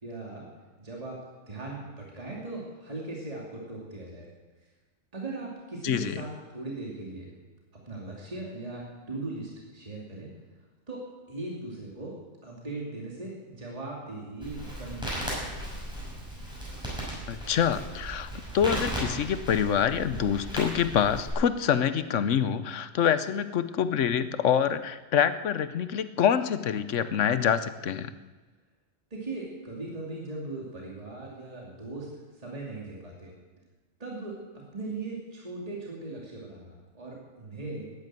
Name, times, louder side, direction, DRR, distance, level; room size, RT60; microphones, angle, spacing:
voice 1, 0.0-0.5 0.8-1.2 1.5-4.3 5.1-7.3 7.7-10.3 10.9-11.0 11.3-12.1 12.4-15.5 29.1-32.1 32.3-33.3 34.0-37.8, right 2 dB, 30° right, -3 dB, 2.8 m, -39 dB
voice 2, 5.8-6.1 17.3-18.3 18.5-28.1, left 8 dB, 85° left, 13 dB, 1.2 m, -26 dB
Crackle, 14.4-21.3, right 1 dB, 5° right, 6.1 m, -36 dB
14.0 x 10.5 x 9.2 m, 1.3 s
omnidirectional pair, 1.2 m